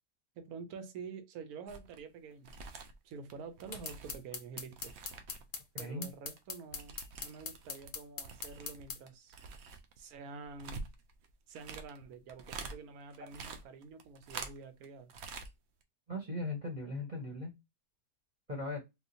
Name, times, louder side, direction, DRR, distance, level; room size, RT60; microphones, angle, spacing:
voice 1, 0.4-2.6 3.0-4.9 5.8-7.0 7.2-9.4 10.0-10.9 11.5-15.1, right 5 dB, 70° right, 1.1 m, -48 dB
sound 1, 1.7-2.0 2.3-5.6 5.8-7.9 8.2-12.8 13.1-14.8 15.1-15.5 15.8-15.9, right 4 dB, 85° right, 0.5 m, -47 dB
sound 2, 3.7-9.0, left 5 dB, 60° left, 0.6 m, -42 dB
voice 2, 5.7-6.1 16.1-17.5 18.5-18.8, left 1 dB, 35° right, 0.9 m, -38 dB
3.6 x 2.4 x 2.6 m
omnidirectional pair, 1.8 m